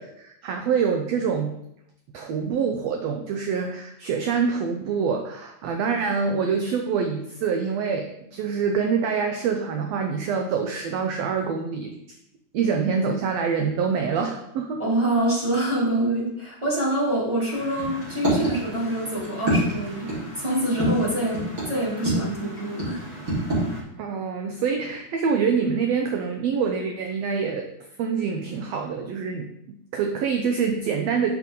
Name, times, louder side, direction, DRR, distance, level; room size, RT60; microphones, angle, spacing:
voice 1, 0.0-1.5 2.1-11.9 12.5-14.8 24.0-27.7 28.0-29.5 29.9-31.3, right 6 dB, 75° right, 4 dB, 1.5 m, -25 dB
voice 2, 14.8-20.1 20.4-23.0, right 1 dB, 10° right, -6 dB, 2.9 m, -25 dB
sound 1, 17.5-23.8, right 1 dB, 25° right, 4.4 m, -28 dB
8.6 x 7.4 x 4.0 m, 0.78 s
omnidirectional pair, 3.7 m